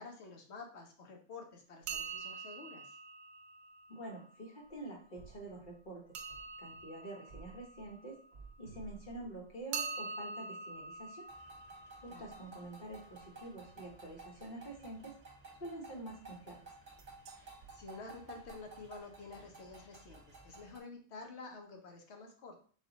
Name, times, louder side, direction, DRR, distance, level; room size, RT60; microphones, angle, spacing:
voice 1, 0.0-3.0 12.1-12.3 17.3-22.6, left 4 dB, 65° left, 1 dB, 1.1 m, -50 dB
sound 1, 1.8-4.6 6.1-8.8 9.7-13.5 17.0-17.3 17.6-17.7 18.4-18.5 18.8-18.9, right 4 dB, 90° right, 1.0 m, -45 dB
voice 2, 3.9-6.0 6.6-8.2 8.6-11.3 12.0-15.1 15.6-16.7, right 1 dB, 45° left, -1 dB, 1.1 m, -47 dB
sound 2, 4.6-5.9 6.3-10.2 10.6-12.8 13.0-14.5, right 4 dB, 60° right, 1.0 m, -58 dB
sound 3, 11.3-20.8, right 3 dB, 35° right, 1.2 m, -55 dB
4.2 x 2.4 x 3.9 m, 0.43 s
omnidirectional pair, 1.2 m